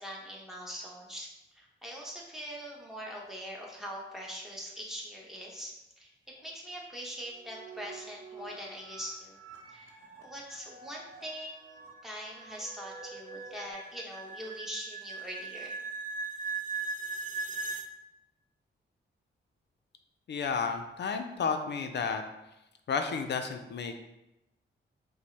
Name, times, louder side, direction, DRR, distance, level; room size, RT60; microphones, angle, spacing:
voice 1, 0.0-9.4 9.7-9.9 10.2-15.8, equal, ahead, -3 dB, 1.0 m, -42 dB
sound 1, 7.2-13.7, right 4 dB, 90° right, 0.7 m, -50 dB
sound 2, 10.7-17.9, right 3 dB, 40° right, 0.4 m, -39 dB
voice 2, 20.3-22.2 22.9-24.0, left 5 dB, 55° left, 6 dB, 0.4 m, -32 dB
5.0 x 2.0 x 3.3 m, 0.92 s
cardioid pair, 70°, 21 cm